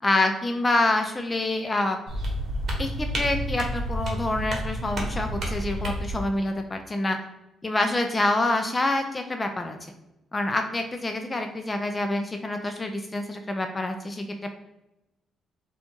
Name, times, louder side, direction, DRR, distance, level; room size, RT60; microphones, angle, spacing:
voice 1, 0.0-2.0 2.8-7.2 7.6-9.8 10.3-14.2, left 2 dB, 25° left, 5 dB, 0.3 m, -26 dB
sound 1, 2.1-6.2, equal, 55° right, 0.9 m, -30 dB
4.3 x 2.3 x 2.7 m, 0.94 s
cardioid pair, 90°, 0 cm